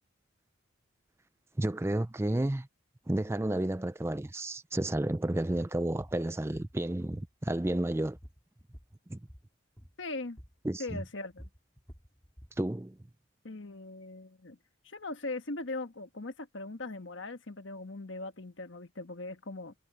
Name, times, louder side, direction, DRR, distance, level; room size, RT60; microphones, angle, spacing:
voice 1, 1.6-2.7 3.1-8.2 9.1-9.2 10.6-11.0 12.6-13.0, right 1 dB, 10° right, 0.4 m, -31 dB
sound 1, 4.9-5.1 5.5-5.7 6.0-6.8 7.1-8.9 9.2-9.5 9.8-10.0 10.4-10.6 10.9-12.6, equal, 15° left, 3.5 m, -50 dB
voice 2, 10.0-10.4 10.8-11.5 13.4-14.6 14.8-19.7, left 2 dB, 65° left, 1.4 m, -40 dB
head